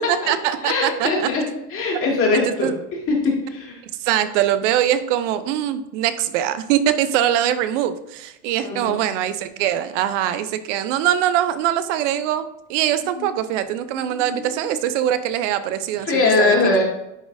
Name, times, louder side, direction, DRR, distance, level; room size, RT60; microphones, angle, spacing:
voice 1, 0.1-1.3 2.3-2.7 4.0-16.5, right 11 dB, 85° right, 12 dB, 0.6 m, -22 dB
voice 2, 0.6-1.4 1.7-2.7 3.1-3.8 8.6-9.0 13.2-13.3 14.0-14.7 16.0-16.8, left 3 dB, 35° left, -1 dB, 2.1 m, -21 dB
9.8 x 4.0 x 2.6 m, 0.88 s
supercardioid pair, 115°, 36 cm